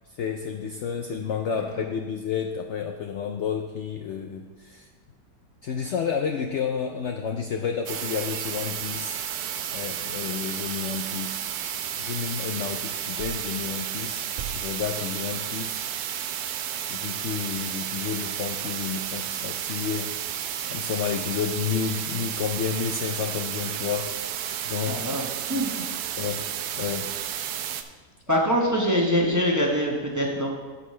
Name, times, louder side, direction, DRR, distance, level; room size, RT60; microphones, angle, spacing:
voice 1, 0.2-4.8 5.6-9.2 9.7-11.4 12.0-15.8 16.9-20.1 20.7-24.3 24.6-25.0 26.2-26.4 26.7-27.1, left 7 dB, 80° left, 3 dB, 0.6 m, -30 dB
sound 1, 7.9-27.8, right 10 dB, 85° right, 1.2 m, -32 dB
sound 2, 13.2-13.5 14.4-14.8, right 7 dB, 60° right, 0.5 m, -37 dB
voice 2, 24.9-25.8 28.3-30.5, equal, 15° right, -1 dB, 0.9 m, -24 dB
15.5 x 5.3 x 3.2 m, 1.4 s
omnidirectional pair, 1.8 m